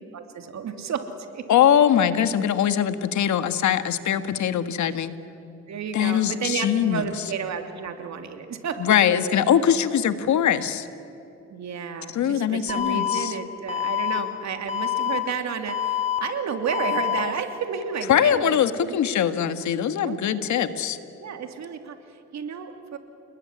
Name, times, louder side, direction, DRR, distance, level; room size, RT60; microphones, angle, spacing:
voice 1, 0.1-1.1 1.3-1.5 5.7-9.0 11.5-19.0 20.0-20.2 20.5-20.6 21.2-23.0, right 6 dB, 65° right, 6 dB, 3.0 m, -32 dB
voice 2, 1.5-5.1 5.9-7.1 8.8-10.9 12.1-13.3 18.1-21.0, left 9 dB, 70° left, 11 dB, 1.7 m, -22 dB
Alarm, 12.7-13.2 13.7-14.2 14.7-15.2 15.7-16.2 16.7-17.2, left 10 dB, 20° left, 4.7 m, -26 dB
29.0 x 20.5 x 9.8 m, 2.8 s
cardioid pair, 90°, 30 cm